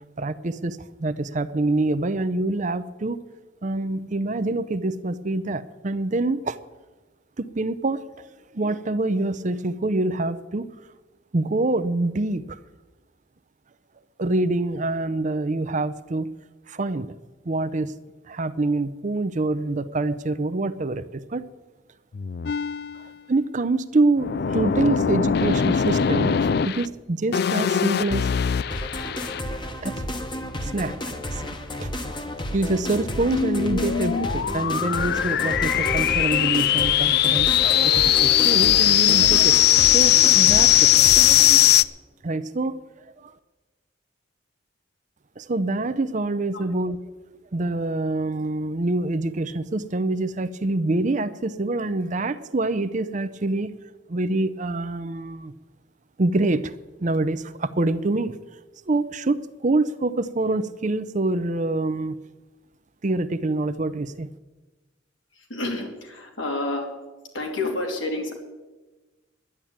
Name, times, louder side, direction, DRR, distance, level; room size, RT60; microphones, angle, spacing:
voice 1, 0.2-3.2 3.6-6.6 7.4-8.3 8.5-10.7 11.3-12.6 14.2-16.3 16.7-17.1 17.5-17.9 18.3-21.4 23.0-28.3 29.8-30.0 30.6-31.5 31.8-31.9 32.5-37.5 37.9-39.6 39.9-40.7 42.2-42.8 43.2-43.3 45.4-53.7 54.1-55.5 56.2-56.7 57.0-58.4 58.9-62.2 63.0-64.3, right 2 dB, 40° right, 14 dB, 0.6 m, -26 dB
sound 1, 22.1-23.1 24.2-26.9 27.3-29.4 33.0-41.8, left 11 dB, 55° left, 0.4 m, -20 dB
sound 2, 28.7-41.6, left 1 dB, 25° left, 1.1 m, -32 dB
voice 2, 65.3-66.9 67.3-68.3, left 2 dB, 75° left, 2 dB, 2.9 m, -29 dB
11.0 x 10.5 x 8.7 m, 1.2 s
head